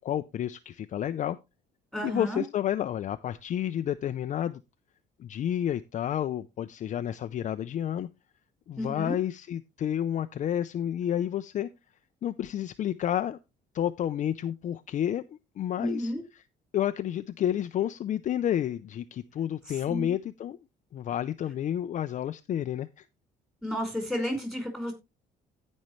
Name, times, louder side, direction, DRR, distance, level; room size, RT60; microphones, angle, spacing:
voice 1, 0.0-1.4 2.0-4.6 5.2-8.1 8.7-11.7 12.2-13.4 13.7-16.1 16.7-20.6 20.9-23.0, left 10 dB, 45° left, 0.5 m, -30 dB
voice 2, 1.9-2.4 8.8-9.2 15.8-16.2 19.9-20.1 23.6-24.9, equal, 5° right, 4.7 m, -32 dB
16.0 x 5.4 x 3.1 m
cardioid pair, 110°, 17 cm